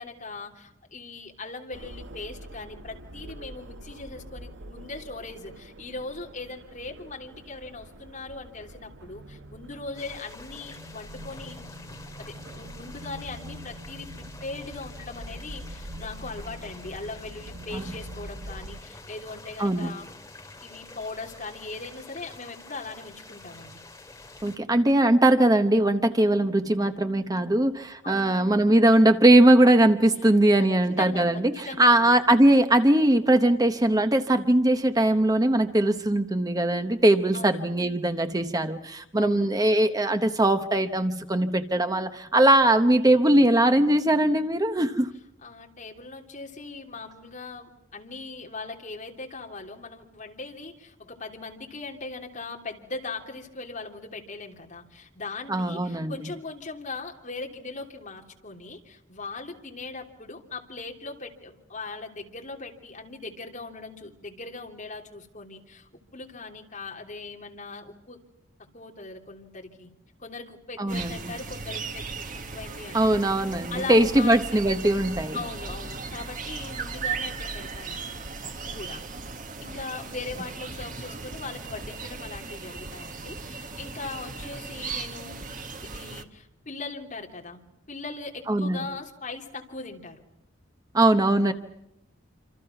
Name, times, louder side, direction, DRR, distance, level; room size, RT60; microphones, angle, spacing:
voice 1, 0.0-11.7 12.2-20.1 20.6-23.8 28.0-28.4 30.9-32.1 37.3-37.6 39.2-39.5 45.4-68.2 68.7-69.9 70.2-73.2 73.7-74.4 75.3-78.2 78.6-79.0 79.6-85.5 85.8-90.2, left 3 dB, 40° left, 2 dB, 3.2 m, -39 dB
sound 1, 1.7-18.8, right 1 dB, 65° right, 1.1 m, -44 dB
sound 2, 10.0-24.6, left 2 dB, 15° left, 2.6 m, -47 dB
voice 2, 19.6-19.9 24.4-45.1 55.5-56.1 70.8-71.2 72.9-75.4 88.5-88.8 90.9-91.5, right 1 dB, 20° right, 8 dB, 0.9 m, -21 dB
sound 3, 70.9-86.2, right 4 dB, 40° right, 1.6 m, -37 dB
27.5 x 26.5 x 5.9 m, 0.86 s
head